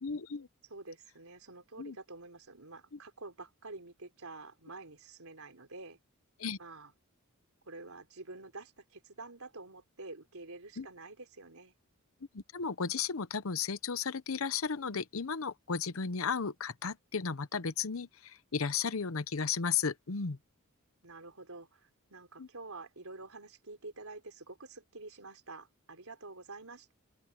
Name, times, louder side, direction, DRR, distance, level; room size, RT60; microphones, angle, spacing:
voice 1, 0.0-0.5 1.8-2.0 6.4-6.6 10.8-10.9 12.3-20.4 22.4-22.5, left 6 dB, 75° left, 0.8 m, -34 dB
voice 2, 0.7-6.0 6.6-6.9 7.6-11.7 21.0-26.9, right 3 dB, 90° right, 4.1 m, -48 dB
open air
head